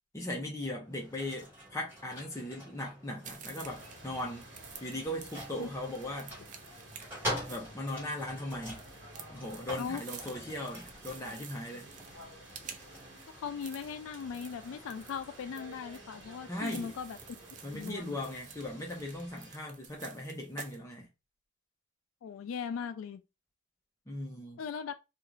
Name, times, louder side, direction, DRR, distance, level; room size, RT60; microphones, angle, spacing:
voice 1, 0.1-4.4 4.8-6.3 7.5-8.8 9.3-11.9 16.5-16.9 17.6-21.1 24.1-24.6, left 1 dB, 15° left, 0.6 m, -38 dB
sound 1, 0.8-18.0, equal, 10° right, 1.5 m, -46 dB
sound 2, 3.2-20.8, right 7 dB, 40° right, 0.3 m, -51 dB
sound 3, 3.6-19.6, right 1 dB, 65° right, 1.2 m, -53 dB
voice 2, 13.3-17.2 17.7-18.2 22.2-23.2 24.6-24.9, left 6 dB, 85° left, 0.3 m, -39 dB
2.4 x 2.4 x 3.0 m
head